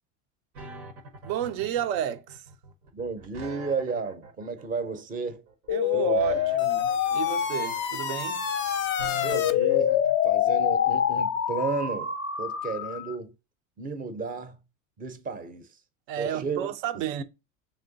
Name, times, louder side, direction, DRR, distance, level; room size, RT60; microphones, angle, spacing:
sound 1, 0.5-10.1, right 2 dB, 90° right, 0.9 m, -44 dB
voice 1, 1.2-2.4 5.7-8.4 16.1-17.2, right 10 dB, 70° right, 0.6 m, -31 dB
voice 2, 2.9-5.4 5.9-6.4 9.2-12.1 12.4-13.3 13.8-14.6 15.0-15.7 16.2-16.7 17.2-17.3, right 4 dB, 20° right, 0.6 m, -33 dB
sound 2, 5.7-13.2, left 9 dB, 30° left, 0.5 m, -26 dB
3.2 x 2.8 x 3.9 m
supercardioid pair, 100°, 41 cm